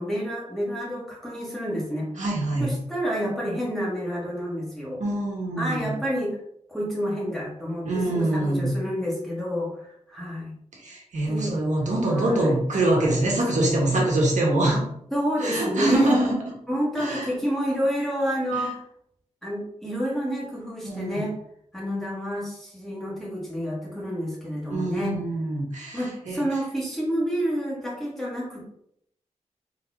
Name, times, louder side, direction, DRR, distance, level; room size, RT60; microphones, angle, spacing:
voice 1, 0.0-2.1 2.6-5.0 5.6-6.4 6.7-10.5 11.3-11.6 12.1-13.9 15.1-16.2 16.7-18.8 19.4-21.3 21.7-25.2 25.9-28.6, equal, 5° left, -5 dB, 1.7 m, -29 dB
voice 2, 2.2-2.7 5.0-6.0 7.8-8.7 10.7-14.8 15.4-16.3 17.0-17.3 18.5-18.7 20.8-21.2 24.7-26.4, right 2 dB, 85° right, -2 dB, 1.4 m, -24 dB
4.0 x 3.5 x 3.7 m, 0.72 s
wide cardioid pair, 125°, 12 cm